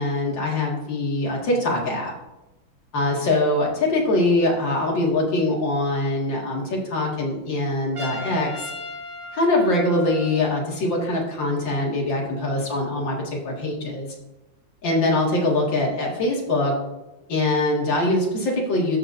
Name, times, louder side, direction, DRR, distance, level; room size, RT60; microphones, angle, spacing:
voice 1, 0.0-2.1 2.9-8.7 9.3-14.1 14.8-16.7 17.3-19.0, left 2 dB, 60° left, -2 dB, 2.6 m, -23 dB
Trumpet, 8.0-10.6, left 2 dB, 25° right, 3.4 m, -37 dB
13.5 x 7.0 x 2.6 m, 0.98 s
omnidirectional pair, 2.4 m